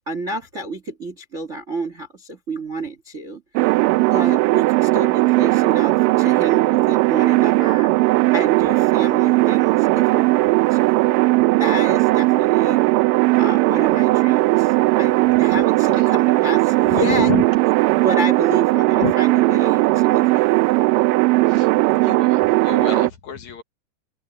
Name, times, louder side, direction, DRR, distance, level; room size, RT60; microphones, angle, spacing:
voice 1, 0.1-3.7 4.0-7.9 8.3-11.0 11.6-12.9 13.4-17.3 17.9-20.5, right 2 dB, 65° right, 0.7 m, -29 dB
sound 1, 3.6-23.1, right 21 dB, 90° right, 2.0 m, -17 dB
voice 2, 16.8-17.5 18.9-19.1 21.5-21.7 22.0-23.6, left 9 dB, 60° left, 2.3 m, -28 dB
open air
omnidirectional pair, 4.6 m